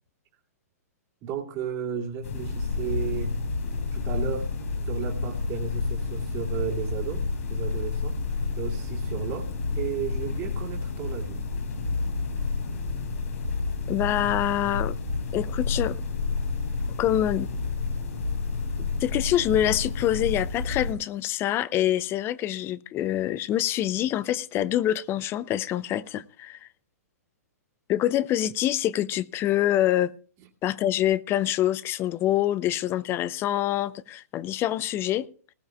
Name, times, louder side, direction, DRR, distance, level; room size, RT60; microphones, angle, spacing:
voice 1, 1.2-3.3 3.9-4.5 4.8-8.2 8.6-11.5 18.8-18.9, right 7 dB, 35° right, 2.5 m, -34 dB
sound 1, 2.2-20.9, left 4 dB, 65° left, 4.7 m, -30 dB
voice 2, 13.9-15.0 15.3-16.0 17.0-17.5 19.0-26.6 27.9-30.1 30.6-35.3, left 12 dB, 25° left, 0.6 m, -25 dB
19.5 x 14.5 x 2.3 m
hypercardioid pair, 125°, 9 cm